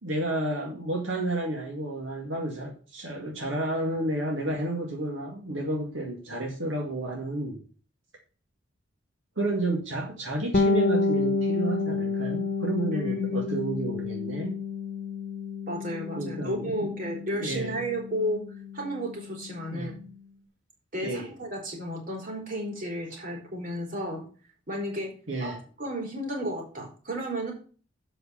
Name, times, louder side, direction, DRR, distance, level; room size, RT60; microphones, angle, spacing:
voice 1, 0.0-7.6 9.4-14.5 16.2-16.9 17.3-17.7 19.7-19.9 21.0-21.3 25.3-25.6, right 1 dB, 80° right, 0 dB, 2.1 m, -31 dB
Bass guitar, 10.5-20.1, left 3 dB, 45° left, 1.2 m, -30 dB
voice 2, 12.9-13.6 15.7-18.4 18.7-19.9 20.9-24.2 24.7-25.1 25.4-25.5 25.8-27.5, equal, 45° right, 0 dB, 3.7 m, -33 dB
7.6 x 6.5 x 5.5 m, 0.38 s
head